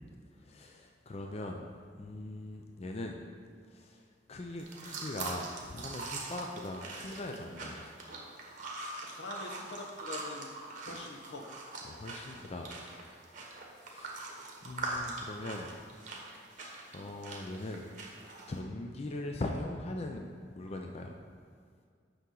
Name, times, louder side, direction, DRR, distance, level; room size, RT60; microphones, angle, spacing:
voice 1, 0.3-1.7 2.0-3.2 3.7-7.8 11.8-12.7 13.8-14.3 14.6-15.7 16.6-17.9 18.5-21.2, left 2 dB, 35° left, 2 dB, 0.5 m, -41 dB
sound 1, 4.6-18.6, right 3 dB, 45° right, 1.1 m, -43 dB
voice 2, 9.0-10.5 10.9-11.5, left 2 dB, 80° left, 2 dB, 1.0 m, -44 dB
8.3 x 6.0 x 3.8 m, 2.1 s
head